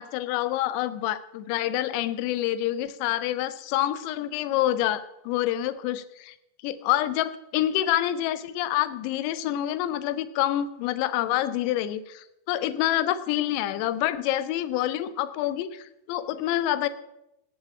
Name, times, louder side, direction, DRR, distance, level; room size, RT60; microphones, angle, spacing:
voice 1, 0.0-6.3 6.6-16.9, left 13 dB, 45° left, 14 dB, 1.1 m, -27 dB
17.5 x 7.3 x 8.7 m, 0.85 s
figure-of-eight pair, 90°, 0 cm